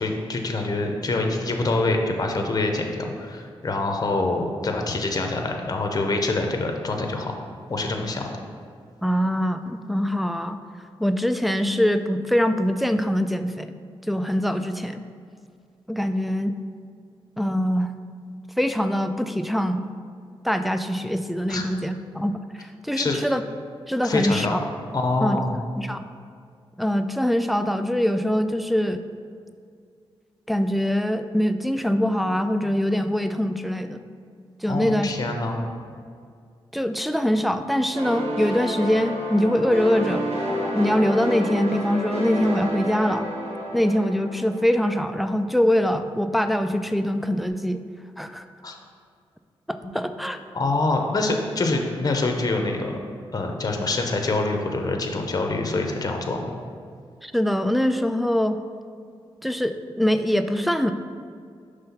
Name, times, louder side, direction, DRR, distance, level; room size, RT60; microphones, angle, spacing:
voice 1, 0.0-7.3 7.7-8.2 21.5-21.6 22.9-23.2 24.0-24.7 24.9-25.6 34.7-35.6 48.6-48.7 49.8-49.9 50.5-53.0 53.3-56.6, left 2 dB, 40° left, 3 dB, 0.7 m, -25 dB
voice 2, 9.0-10.6 11.0-13.7 14.1-15.0 15.9-16.5 17.4-17.9 18.6-19.9 20.4-23.4 23.9-24.6 25.2-25.4 25.8-26.1 26.8-29.0 30.5-34.0 34.6-35.1 36.7-40.3 40.7-43.3 43.7-47.8 48.2-48.4 49.7-50.4 57.2-58.6 59.4-60.9, equal, ahead, 8 dB, 0.3 m, -23 dB
sound 1, 37.9-45.4, equal, 80° right, 1.4 m, -30 dB
5.5 x 3.3 x 5.7 m, 2.2 s
cardioid pair, 75°, 10 cm